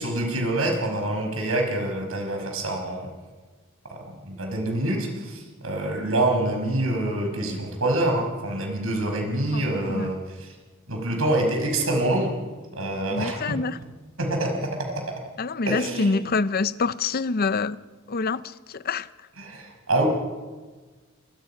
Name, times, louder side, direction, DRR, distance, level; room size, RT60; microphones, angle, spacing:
voice 1, 0.0-3.1 3.9-10.5 10.9-12.3 12.7-13.6 14.2-14.7 15.6-16.3 19.4-20.1, right 1 dB, 90° right, 5.6 m, -26 dB
voice 2, 9.5-10.1 13.1-13.8 15.4-17.8 18.1-19.1, left 4 dB, 50° left, 0.6 m, -26 dB
27.0 x 22.0 x 5.8 m
head